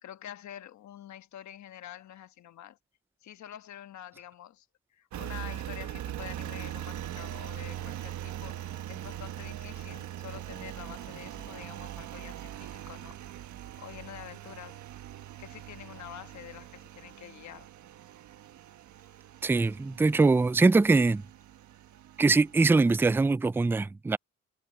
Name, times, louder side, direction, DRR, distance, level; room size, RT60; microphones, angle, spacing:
voice 1, 0.0-2.8 3.2-4.7 4.9-13.4 13.8-14.8 15.4-17.7, left 11 dB, 65° left, 1.4 m, -47 dB
Engine, 5.1-23.1, right 12 dB, 75° right, 1.4 m, -42 dB
voice 2, 19.4-21.2 22.2-24.2, right 3 dB, 10° right, 0.3 m, -22 dB
cardioid pair, 90°, 30 cm